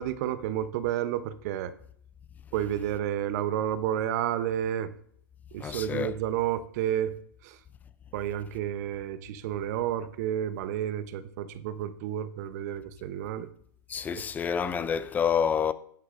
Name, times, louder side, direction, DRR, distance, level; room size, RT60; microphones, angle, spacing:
voice 1, 0.0-1.7 2.5-4.9 5.5-7.1 7.4-7.6 8.1-13.5, right 11 dB, 50° right, 0.8 m, -31 dB
voice 2, 5.6-6.1 13.9-15.7, left 7 dB, 15° left, 0.4 m, -28 dB
11.0 x 10.5 x 2.5 m
hypercardioid pair, 130°, 11 cm